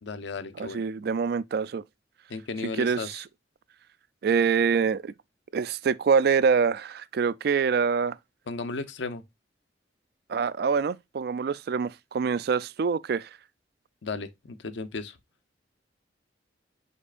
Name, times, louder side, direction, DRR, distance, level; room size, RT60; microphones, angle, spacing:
voice 1, 0.0-0.8 2.3-3.2 8.5-9.2 14.0-15.2, left 4 dB, 80° left, 0.7 m, -35 dB
voice 2, 0.6-1.8 2.7-3.2 4.2-5.1 5.5-8.2 10.3-13.3, right 6 dB, 60° right, 0.3 m, -25 dB
5.3 x 4.2 x 2.4 m
head